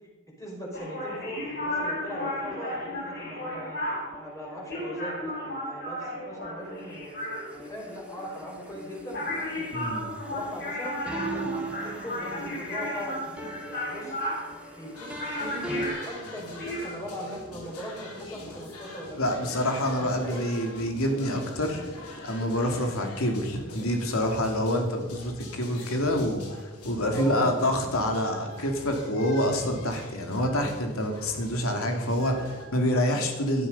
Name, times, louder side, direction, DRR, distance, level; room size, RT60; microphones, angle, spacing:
voice 1, 0.4-3.9 4.2-7.1 7.5-9.9 10.3-14.1 14.8-15.1 15.4-19.5 20.0-20.5 27.1-27.6, equal, 15° left, -3 dB, 5.2 m, -39 dB
sound 1, 0.7-16.9, left 1 dB, 50° left, 6.2 m, -34 dB
sound 2, 2.4-15.9, right 2 dB, 5° right, 1.6 m, -41 dB
voice 2, 9.7-10.1 19.2-21.8 22.2-33.7, left 1 dB, 70° left, 3 dB, 2.8 m, -27 dB
sound 3, 14.9-32.6, left 1 dB, 90° left, 4.3 m, -43 dB
18.0 x 12.5 x 5.5 m, 1.2 s
head